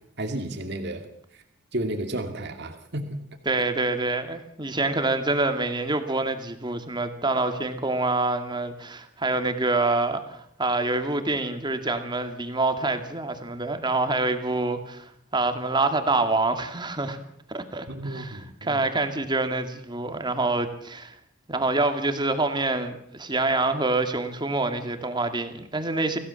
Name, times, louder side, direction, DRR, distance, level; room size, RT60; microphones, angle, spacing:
voice 1, 0.2-1.1 1.7-3.2 17.9-18.8, right 1 dB, 60° right, 5 dB, 2.3 m, -32 dB
voice 2, 3.5-17.2 17.5-21.1 21.5-26.2, right 2 dB, 25° right, 7 dB, 2.4 m, -26 dB
26.0 x 16.5 x 7.1 m, 0.72 s
head